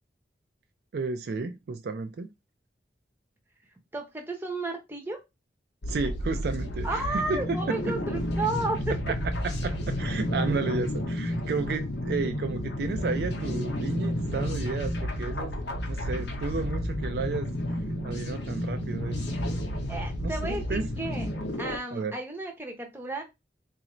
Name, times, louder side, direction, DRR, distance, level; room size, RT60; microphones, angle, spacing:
voice 1, 0.9-2.3 5.9-8.0 8.9-15.6 15.9-17.5 18.0-19.2 20.2-20.9 21.9-22.2, right 4 dB, 60° right, 0.3 m, -32 dB
voice 2, 3.9-5.2 6.8-8.9 19.9-21.3 21.6-23.2, right 2 dB, 10° right, 0.7 m, -33 dB
sound 1, 5.8-21.8, left 1 dB, 80° left, 0.8 m, -31 dB
3.9 x 2.5 x 3.0 m
head